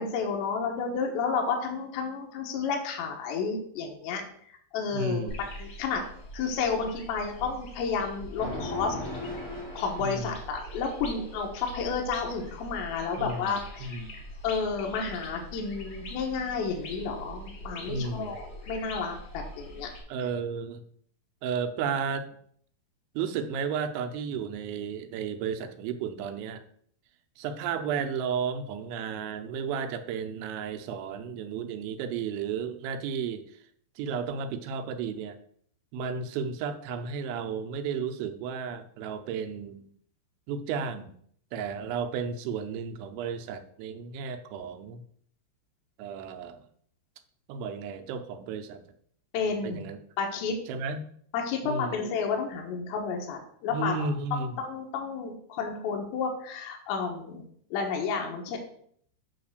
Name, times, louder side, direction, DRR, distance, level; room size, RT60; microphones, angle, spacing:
voice 1, 0.0-4.2 4.5-6.0 6.3-9.0 9.8-13.9 14.4-19.9 49.3-49.9 50.2-50.6 51.3-53.9 54.3-57.4 57.7-58.6, left 5 dB, 75° left, 1 dB, 3.3 m, -31 dB
voice 2, 4.9-5.4 10.0-10.4 13.2-14.1 17.9-18.3 20.1-20.8 21.4-22.3 23.1-26.6 27.4-33.6 34.0-35.4 35.9-39.8 40.5-41.1 41.5-45.0 46.0-46.6 47.5-48.9 49.6-50.0 50.7-51.1 51.6-52.0 53.7-54.6, right 6 dB, 85° right, 7 dB, 3.1 m, -33 dB
sound 1, 5.3-20.0, equal, 55° left, 1.7 m, -43 dB
sound 2, 8.4-10.7, left 2 dB, 30° left, 1.1 m, -37 dB
8.6 x 3.2 x 6.5 m, 0.63 s
omnidirectional pair, 5.3 m